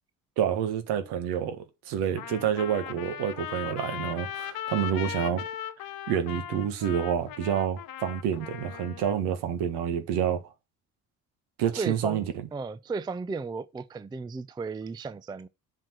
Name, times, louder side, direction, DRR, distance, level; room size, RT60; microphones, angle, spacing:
voice 1, 0.4-5.4 6.1-10.4 11.6-12.2, right 9 dB, 60° right, 1.5 m, -28 dB
Trumpet, 2.2-9.2, left 10 dB, 50° left, 1.1 m, -38 dB
voice 2, 11.8-15.5, right 4 dB, 10° right, 0.5 m, -35 dB
7.3 x 4.9 x 6.1 m
figure-of-eight pair, 50°, 45 cm